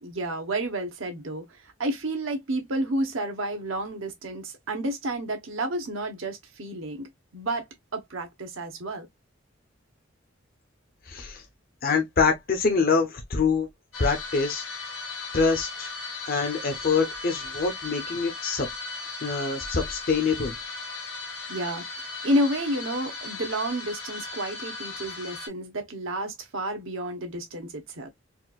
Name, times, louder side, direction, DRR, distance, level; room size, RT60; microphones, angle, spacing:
voice 1, 0.0-1.4 1.8-7.6 7.9-9.1 21.5-21.8 22.2-28.1, right 1 dB, 85° right, 1.0 m, -30 dB
voice 2, 11.1-11.4 11.8-13.7 14.0-14.6 15.3-15.9 16.3-18.7 19.2-20.5, left 4 dB, 50° left, 0.7 m, -25 dB
sound 1, 13.9-25.5, left 3 dB, 90° left, 1.5 m, -37 dB
4.2 x 2.5 x 2.3 m
head